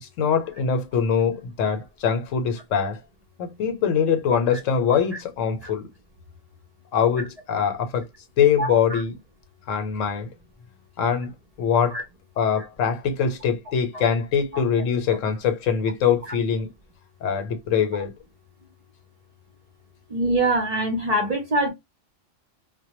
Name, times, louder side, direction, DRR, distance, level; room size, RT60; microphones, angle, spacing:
voice 1, 0.0-3.0 3.4-5.9 6.9-8.1 8.4-9.2 9.7-10.3 11.0-11.3 11.6-12.0 12.4-16.7 17.2-18.1, left 7 dB, 80° left, 1.0 m, -23 dB
voice 2, 8.6-9.0 11.9-12.0 13.9-14.0 20.1-21.7, right 1 dB, 45° right, 0.5 m, -23 dB
2.1 x 2.1 x 2.8 m
omnidirectional pair, 1.3 m